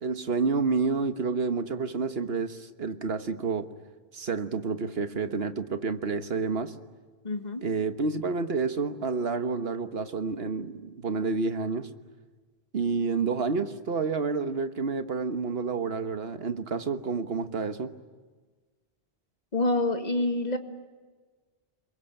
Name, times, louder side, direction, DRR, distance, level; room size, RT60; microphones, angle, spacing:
voice 1, 0.0-3.7 4.1-6.7 7.6-11.9 12.7-17.9, right 4 dB, 70° right, 1.5 m, -29 dB
voice 2, 7.2-7.6 19.5-20.6, left 2 dB, 45° left, 1.9 m, -27 dB
27.0 x 23.0 x 9.0 m
omnidirectional pair, 1.1 m